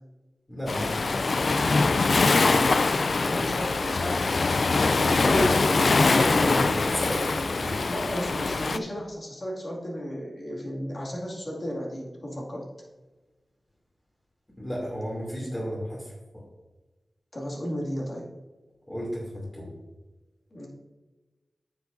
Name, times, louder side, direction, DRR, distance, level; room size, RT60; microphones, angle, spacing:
voice 1, 0.5-1.5 3.1-3.5 5.0-7.8 14.6-16.1 18.9-19.7, equal, 20° left, -6 dB, 2.7 m, -32 dB
Waves surf, 0.7-8.8, left 3 dB, 70° left, 0.3 m, -23 dB
voice 2, 3.2-4.5 7.9-12.7 17.3-18.3 20.5-20.7, equal, 50° left, -3 dB, 2.2 m, -34 dB
9.3 x 7.1 x 2.6 m, 1.2 s
wide cardioid pair, 65°, 0 cm